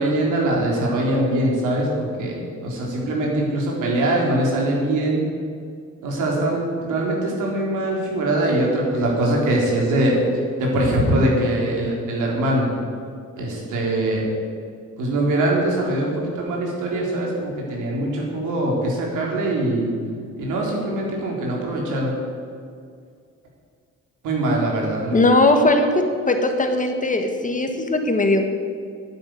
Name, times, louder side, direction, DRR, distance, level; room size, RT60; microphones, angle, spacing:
voice 1, 0.0-5.2 6.0-10.2 10.6-12.7 13.4-14.3 15.0-19.9 20.4-22.2 24.2-25.3, right 1 dB, 85° right, -2 dB, 3.9 m, -22 dB
voice 2, 25.1-25.9 26.3-28.5, left 2 dB, 25° left, 5 dB, 1.6 m, -19 dB
9.8 x 8.7 x 9.4 m, 2.2 s
cardioid pair, 90°, 30 cm